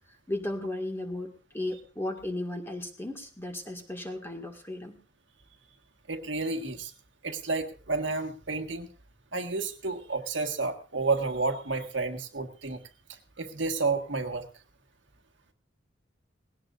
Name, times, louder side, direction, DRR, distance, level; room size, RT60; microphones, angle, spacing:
voice 1, 0.3-5.0, left 1 dB, 15° left, 4 dB, 1.9 m, -35 dB
voice 2, 6.1-6.9 7.2-8.9 9.3-12.8 13.4-14.5, right 3 dB, 80° right, 5 dB, 1.6 m, -30 dB
19.5 x 17.0 x 2.5 m, 0.34 s
head